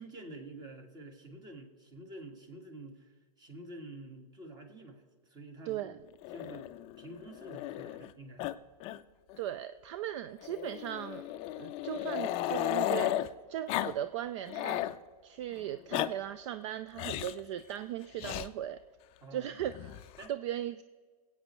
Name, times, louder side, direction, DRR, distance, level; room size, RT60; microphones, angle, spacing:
voice 1, 0.0-5.9 6.3-6.7 7.0-8.5 19.2-19.6 20.2-20.3, right 2 dB, 20° right, 5 dB, 1.8 m, -48 dB
voice 2, 5.7-6.0 9.4-11.2 11.5-14.9 15.2-18.8 19.3-20.0 20.3-20.8, right 11 dB, 50° right, 13 dB, 0.4 m, -38 dB
Growling, 6.2-8.1 8.4-8.5 8.8-9.0 9.3-9.4 10.4-13.3 13.7-13.9 14.3-15.0 15.7-16.1 17.0-17.4 18.2-18.5 19.6-20.3, left 14 dB, 30° left, 0.4 m, -35 dB
25.0 x 8.7 x 3.2 m, 1.5 s
hypercardioid pair, 130°, 19 cm